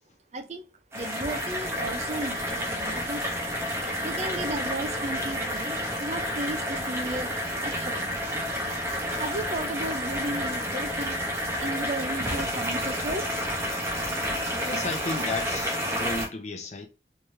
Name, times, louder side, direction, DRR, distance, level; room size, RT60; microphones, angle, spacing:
voice 1, 0.3-0.7 0.9-3.2 4.0-7.4 7.6-8.3 9.1-11.2 11.6-13.2, right 2 dB, 40° right, 0.6 m, -34 dB
sound 1, 0.9-16.3, equal, 15° right, 0.9 m, -30 dB
sound 2, 3.3-12.6, equal, 55° right, 1.2 m, -49 dB
voice 2, 14.6-16.9, left 3 dB, 40° left, 0.7 m, -34 dB
3.4 x 3.2 x 2.8 m
head